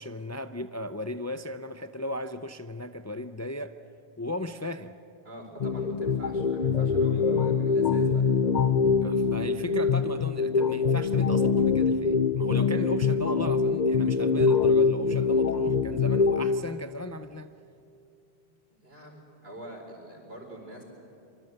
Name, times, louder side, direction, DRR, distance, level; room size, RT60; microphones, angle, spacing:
voice 1, 0.0-3.7 4.2-5.0 9.0-17.5, left 1 dB, 20° left, 9 dB, 0.5 m, -36 dB
voice 2, 5.2-8.2 18.4-18.5 18.8-20.8, right 1 dB, 75° right, 2 dB, 4.7 m, -44 dB
sound 1, 5.6-16.6, left 5 dB, 50° left, 0.8 m, -24 dB
25.0 x 24.0 x 8.0 m, 2.6 s
omnidirectional pair, 1.0 m